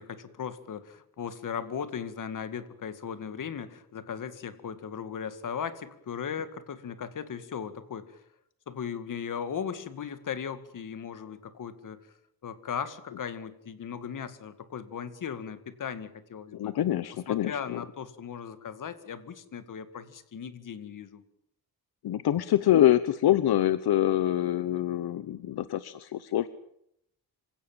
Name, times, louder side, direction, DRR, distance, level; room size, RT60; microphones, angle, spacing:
voice 1, 0.0-8.2 8.7-12.0 12.4-16.8 17.3-21.2, left 7 dB, 55° left, 12 dB, 2.2 m, -37 dB
voice 2, 16.5-17.8 22.0-26.5, left 12 dB, 80° left, 15 dB, 1.0 m, -25 dB
26.5 x 17.0 x 9.0 m, 0.74 s
wide cardioid pair, 155°, 37 cm